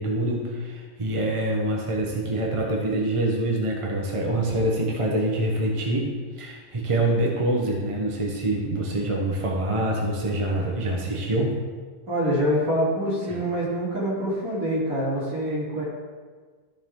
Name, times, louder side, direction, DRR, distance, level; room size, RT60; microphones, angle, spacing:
voice 1, 0.0-11.5, right 1 dB, 20° right, -1 dB, 0.9 m, -25 dB
voice 2, 12.1-15.8, equal, 50° right, -7 dB, 3.2 m, -25 dB
14.0 x 4.9 x 3.8 m, 1.5 s
omnidirectional pair, 1.9 m